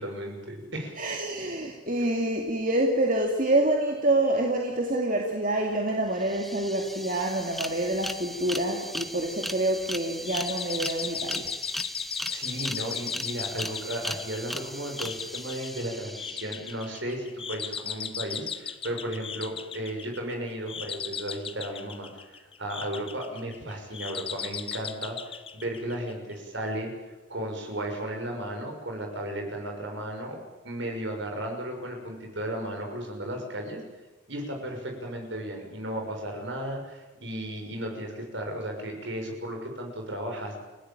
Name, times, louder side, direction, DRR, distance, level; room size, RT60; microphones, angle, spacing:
voice 1, 0.0-1.0 12.3-26.9 27.3-33.8 34.3-40.6, right 1 dB, 65° right, 3 dB, 6.5 m, -35 dB
voice 2, 1.0-11.5, right 1 dB, 40° right, 1 dB, 2.5 m, -27 dB
sound 1, 5.9-6.0 6.2-17.0, equal, ahead, 0.9 m, -37 dB
sound 2, 10.2-26.3, left 7 dB, 25° left, 1.0 m, -37 dB
30.0 x 17.0 x 8.9 m, 1.2 s
head